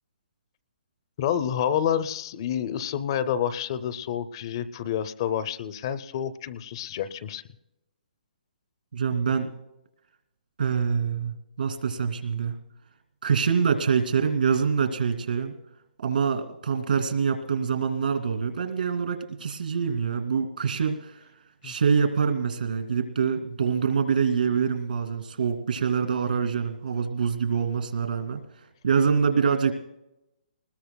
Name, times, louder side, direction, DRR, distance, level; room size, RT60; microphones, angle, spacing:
voice 1, 1.2-7.4 21.6-21.7, left 9 dB, 30° left, 14 dB, 0.5 m, -28 dB
voice 2, 8.9-9.5 10.6-12.6 13.2-15.5 16.0-21.2 21.6-28.4 28.8-29.7, right 6 dB, 75° right, 6 dB, 2.3 m, -25 dB
25.5 x 20.5 x 2.2 m, 0.90 s
hypercardioid pair, 170°, 5 cm